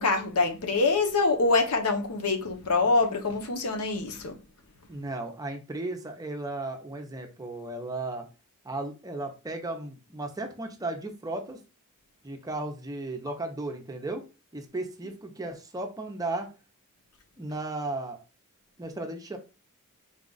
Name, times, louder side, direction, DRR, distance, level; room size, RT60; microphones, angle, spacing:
voice 1, 0.0-4.4, left 3 dB, 80° left, 0.8 m, -25 dB
voice 2, 4.9-8.3 8.6-11.6 12.2-14.2 14.5-16.5 17.4-18.2 18.8-19.4, right 2 dB, 15° right, 0.6 m, -35 dB
4.0 x 2.3 x 3.8 m
head